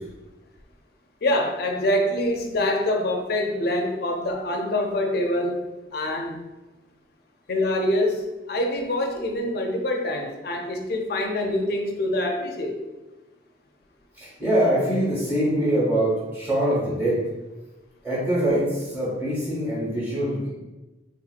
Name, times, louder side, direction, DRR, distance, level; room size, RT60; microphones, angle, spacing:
voice 1, 1.2-6.4 7.5-12.8, left 1 dB, 60° left, 3 dB, 0.4 m, -25 dB
voice 2, 14.2-17.2 18.0-20.5, right 1 dB, 10° right, -8 dB, 1.0 m, -23 dB
3.4 x 2.8 x 2.4 m, 1.1 s
head